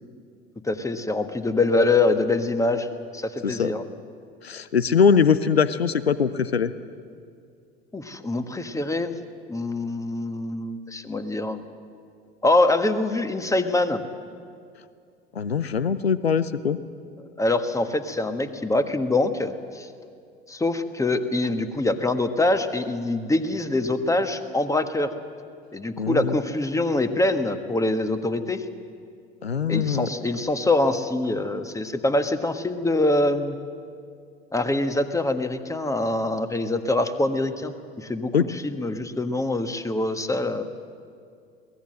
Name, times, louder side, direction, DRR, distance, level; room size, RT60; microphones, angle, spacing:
voice 1, 0.6-2.9 3.1-3.8 7.9-9.1 9.5-11.6 12.4-14.0 17.4-19.9 20.5-25.1 25.7-28.6 29.7-33.6 34.5-40.6, left 2 dB, 10° left, 9 dB, 1.4 m, -24 dB
voice 2, 4.4-6.7 15.4-16.8 26.0-26.3 29.4-30.1 38.3-38.4, left 6 dB, 85° left, 15 dB, 0.6 m, -22 dB
22.0 x 18.5 x 7.7 m, 2.3 s
figure-of-eight pair, 70°, 30 cm